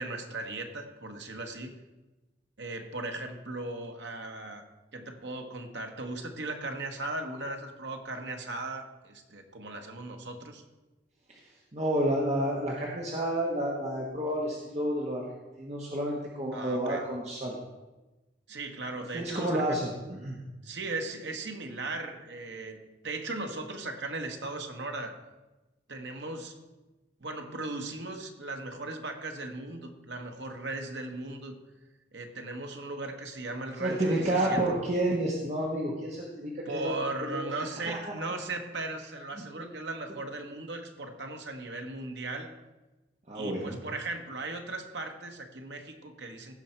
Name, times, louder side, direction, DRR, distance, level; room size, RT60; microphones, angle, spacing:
voice 1, 0.0-1.7 2.6-4.6 4.9-10.6 16.5-17.0 18.5-19.8 20.6-25.1 25.9-26.6 27.2-31.5 32.1-34.6 36.6-42.5 43.3-46.6, right 2 dB, 80° right, 5 dB, 1.2 m, -37 dB
voice 2, 11.7-15.2 15.6-17.6 19.1-20.4 33.8-36.9 37.3-37.5 37.9-38.0 43.3-43.8, right 1 dB, 35° right, -3 dB, 1.2 m, -30 dB
15.5 x 5.5 x 4.4 m, 1.1 s
head